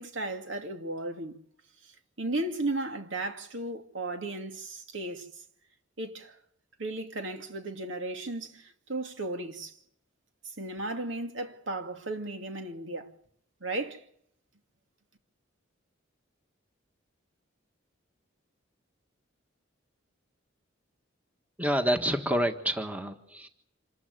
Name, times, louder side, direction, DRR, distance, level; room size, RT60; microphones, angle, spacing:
voice 1, 0.0-1.4 1.8-1.9 2.2-5.3 6.0-6.4 6.8-9.8 10.4-13.1 13.6-14.1, right 2 dB, 70° right, 2.5 m, -35 dB
voice 2, 21.6-23.5, equal, 10° right, 1.5 m, -28 dB
26.5 x 14.5 x 9.3 m
head